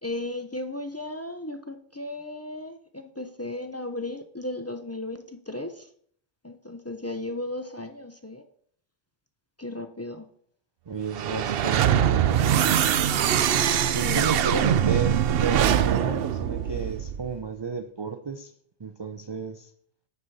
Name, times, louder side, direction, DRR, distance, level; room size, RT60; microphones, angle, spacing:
voice 1, 0.0-5.9 6.4-8.4 9.6-10.3 14.0-14.2, left 2 dB, 20° left, 7 dB, 0.4 m, -35 dB
voice 2, 10.9-13.3 13.9-18.5 18.8-19.7, right 5 dB, 35° right, 7 dB, 0.4 m, -33 dB
sound 1, 11.1-17.4, right 9 dB, 65° right, 0.7 m, -23 dB
9.5 x 6.6 x 4.1 m, 0.62 s
omnidirectional pair, 1.1 m